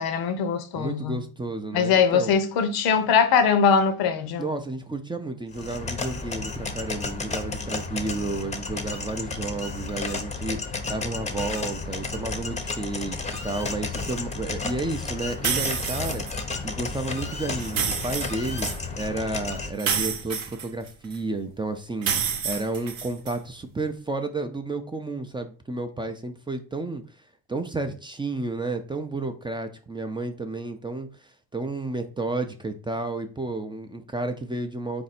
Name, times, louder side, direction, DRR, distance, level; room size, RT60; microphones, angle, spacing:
voice 1, 0.0-1.2 1.7-4.5, left 6 dB, 80° left, 0.7 m, -21 dB
voice 2, 0.7-2.3 4.4-18.7 19.0-27.0 27.5-35.0, right 2 dB, 15° right, 0.4 m, -32 dB
sound 1, 5.5-19.7, left 4 dB, 20° left, 0.6 m, -32 dB
sound 2, 15.4-16.3 17.6-18.8 19.8-21.2 22.0-23.4, right 7 dB, 70° right, 0.8 m, -28 dB
4.1 x 2.6 x 4.1 m
cardioid pair, 100°, 36 cm